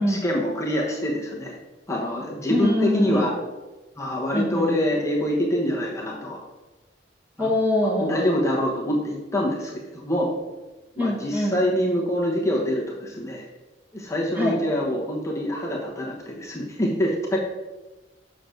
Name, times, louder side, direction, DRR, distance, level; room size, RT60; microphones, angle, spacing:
voice 1, 0.0-1.6 1.9-3.3 4.0-6.4 7.4-7.5 8.0-10.3 11.0-13.5 13.9-17.4, equal, 15° left, -4 dB, 1.1 m, -25 dB
voice 2, 2.5-3.3 4.3-4.7 7.4-8.3 11.0-11.6 14.4-14.5, left 1 dB, 10° right, -2 dB, 1.3 m, -24 dB
6.4 x 4.0 x 6.4 m, 1.2 s
head